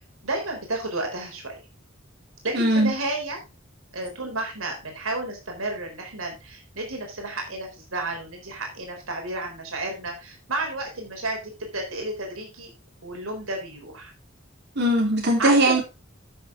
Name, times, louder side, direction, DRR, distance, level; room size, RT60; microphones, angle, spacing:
voice 1, 0.2-1.6 2.4-3.4 3.9-12.7 13.0-14.1 15.4-15.8, right 2 dB, 85° right, 4.2 m, -32 dB
voice 2, 2.5-2.9 14.8-15.8, right 1 dB, 55° right, 3.9 m, -20 dB
12.5 x 6.9 x 3.8 m
head